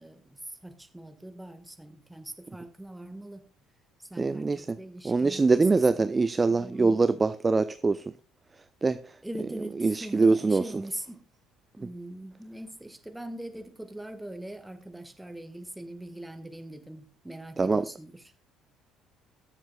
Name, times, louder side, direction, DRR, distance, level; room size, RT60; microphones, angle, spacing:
voice 1, 0.0-3.4 4.0-5.6 6.6-7.0 9.2-11.2 11.8-18.2, right 1 dB, 5° right, 1.6 m, -42 dB
voice 2, 4.2-4.8 5.0-8.0 8.8-9.0 9.8-10.7 17.6-17.9, right 3 dB, 25° right, 0.5 m, -23 dB
21.5 x 7.3 x 2.3 m
figure-of-eight pair, 50°, 0 cm